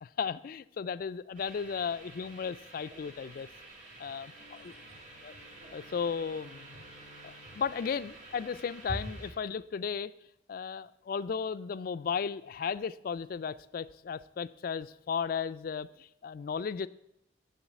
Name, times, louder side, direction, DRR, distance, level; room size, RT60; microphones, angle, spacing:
voice 1, 0.0-3.5 4.0-4.3 5.2-5.3 5.7-6.8 7.2-10.1 10.5-16.9, left 6 dB, 50° left, 16 dB, 0.3 m, -35 dB
sound 1, 1.3-9.3, right 1 dB, 40° right, 2.5 m, -47 dB
sound 2, 4.2-9.0, left 1 dB, 65° right, 2.9 m, -59 dB
7.2 x 7.0 x 8.0 m, 0.82 s
head